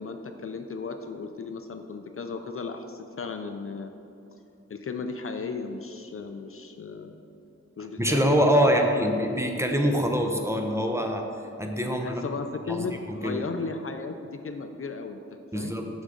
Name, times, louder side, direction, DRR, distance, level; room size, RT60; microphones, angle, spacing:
voice 1, 0.0-3.9 4.7-7.1 7.8-9.3 11.9-15.8, left 4 dB, 50° left, 6 dB, 0.4 m, -35 dB
voice 2, 8.0-11.3 11.6-12.2 13.2-13.4 15.5-15.9, equal, 10° right, 3 dB, 0.7 m, -24 dB
6.4 x 6.2 x 3.8 m, 2.7 s
wide cardioid pair, 70°, 29 cm